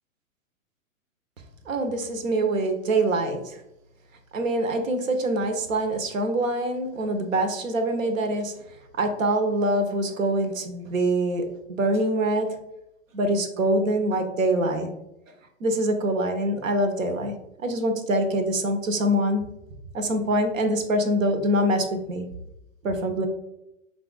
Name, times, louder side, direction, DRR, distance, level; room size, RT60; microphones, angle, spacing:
voice 1, 1.7-3.6 4.3-8.5 9.0-12.6 13.1-14.9 15.6-19.5 19.9-22.3 22.8-23.3, right 1 dB, 75° right, 7 dB, 1.0 m, -24 dB
5.5 x 2.5 x 3.9 m, 0.87 s
hypercardioid pair, 115°, 40 cm